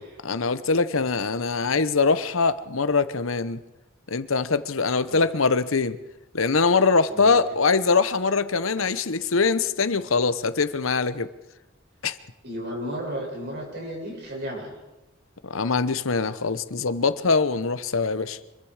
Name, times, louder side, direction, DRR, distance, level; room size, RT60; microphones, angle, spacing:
voice 1, 0.2-3.6 4.1-6.0 6.3-11.3 12.0-12.2 15.4-18.4, left 4 dB, 90° left, 12 dB, 1.0 m, -23 dB
voice 2, 12.4-14.7, equal, 55° right, -1 dB, 7.7 m, -34 dB
26.0 x 22.0 x 5.0 m, 1.0 s
head